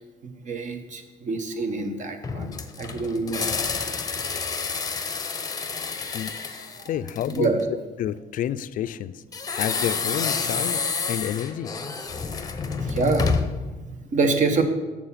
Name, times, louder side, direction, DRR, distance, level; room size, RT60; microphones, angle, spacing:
voice 1, 0.2-2.5 2.8-3.4 7.3-7.6 12.3-12.4 12.7-13.3 13.6-14.6, right 4 dB, 45° right, 7 dB, 1.1 m, -26 dB
sound 1, 2.2-7.6 9.3-13.7, left 5 dB, 20° left, 0.7 m, -29 dB
voice 2, 6.9-7.6 8.0-11.7, left 10 dB, 55° left, 14 dB, 0.4 m, -29 dB
7.1 x 6.7 x 5.7 m, 1.2 s
cardioid pair, 110°, 17 cm